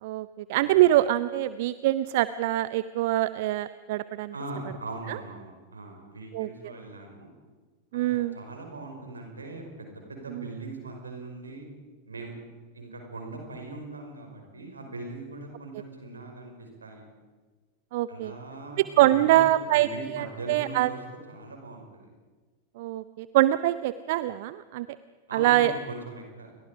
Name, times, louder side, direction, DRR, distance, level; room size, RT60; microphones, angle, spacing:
voice 1, 0.0-4.3 5.1-5.2 6.3-6.5 7.9-8.4 10.3-10.4 17.9-18.3 18.8-20.9 22.8-24.9 25.3-25.7, right 15 dB, 50° right, 15 dB, 0.6 m, -24 dB
voice 2, 4.3-7.3 7.9-11.7 12.1-12.3 12.7-17.0 18.1-19.4 19.7-21.0 21.3-22.1 25.3-26.6, right 2 dB, 75° right, 3 dB, 5.4 m, -40 dB
29.5 x 23.0 x 5.1 m, 1.4 s
figure-of-eight pair, 90°, 0 cm